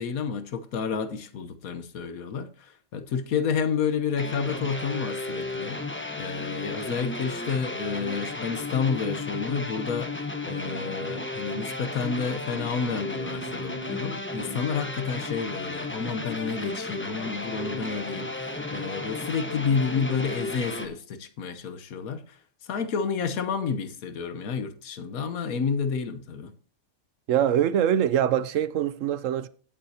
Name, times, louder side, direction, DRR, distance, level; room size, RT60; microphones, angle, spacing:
voice 1, 0.0-5.8 6.2-10.1 10.5-26.5, left 6 dB, 80° left, 1.4 m, -30 dB
sound 1, 4.2-20.9, left 2 dB, 10° left, 0.9 m, -34 dB
voice 2, 27.3-29.5, right 10 dB, 70° right, 0.9 m, -23 dB
17.0 x 7.4 x 2.8 m
omnidirectional pair, 1.5 m